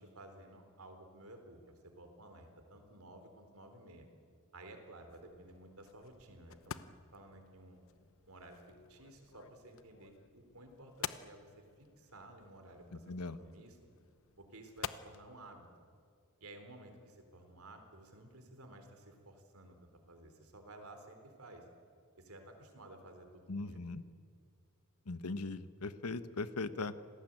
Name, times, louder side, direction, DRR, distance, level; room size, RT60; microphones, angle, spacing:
voice 1, 0.0-4.1 4.5-6.8 7.1-7.8 8.3-8.6 8.9-13.1 13.4-13.8 14.4-15.7 16.4-21.7 22.2-23.8, right 1 dB, 75° right, 6 dB, 4.0 m, -54 dB
sound 1, 5.1-15.2, left 7 dB, 65° left, 0.9 m, -50 dB
voice 2, 12.9-13.4 23.5-24.0 25.1-26.9, left 3 dB, 90° left, 13 dB, 1.2 m, -39 dB
27.0 x 18.5 x 9.0 m, 2.2 s
head